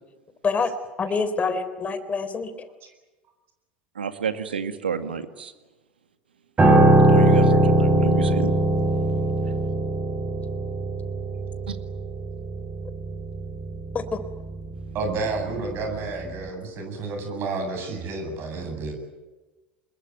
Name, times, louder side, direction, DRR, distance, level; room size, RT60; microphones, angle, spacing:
voice 1, 0.4-2.7 13.9-14.2, left 4 dB, 25° left, 12 dB, 3.7 m, -26 dB
voice 2, 4.0-5.5 7.1-8.5 11.7-11.8, right 6 dB, 90° right, 9 dB, 2.1 m, -29 dB
Piano, 6.6-16.0 16.2-16.5, right 1 dB, 25° right, 7.4 m, -21 dB
voice 3, 14.9-18.9, right 3 dB, 50° right, 5 dB, 8.0 m, -30 dB
27.0 x 21.5 x 9.4 m, 1.1 s
hypercardioid pair, 80°, 5 cm